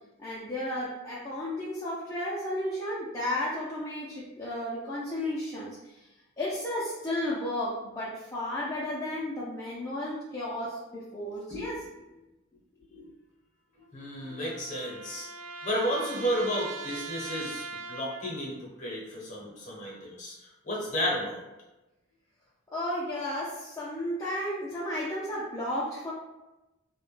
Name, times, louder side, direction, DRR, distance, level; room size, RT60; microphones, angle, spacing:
voice 1, 0.2-6.1 6.4-11.8 22.7-26.1, left 1 dB, 15° left, -9 dB, 0.3 m, -33 dB
sound 1, 13.8-18.6, right 3 dB, 60° right, 0.3 m, -41 dB
voice 2, 13.9-15.3 15.6-18.5 18.8-21.4, equal, 35° left, -3 dB, 0.7 m, -32 dB
2.1 x 2.1 x 3.1 m, 1.0 s
head